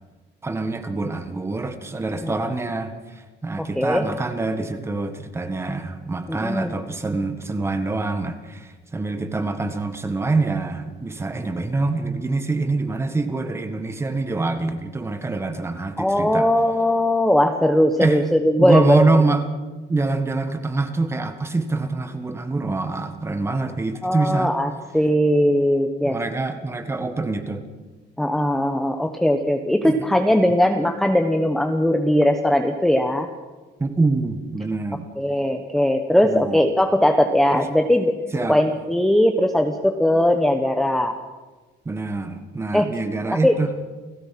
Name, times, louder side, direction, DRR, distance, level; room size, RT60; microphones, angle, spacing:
voice 1, 0.4-16.5 18.0-18.2 18.6-19.5 19.9-24.5 26.0-27.6 29.8-30.0 33.8-35.1 36.2-36.6 37.5-37.7 38.3-38.6 41.8-43.7, right 3 dB, 15° right, 8 dB, 1.6 m, -25 dB
voice 2, 3.6-4.0 6.3-6.7 16.0-19.2 24.0-26.2 28.2-33.3 35.2-38.1 38.5-41.1 42.7-42.9 43.4-43.5, left 1 dB, ahead, 5 dB, 1.0 m, -19 dB
29.0 x 18.0 x 6.0 m, 1.3 s
cardioid pair, 180°, 18 cm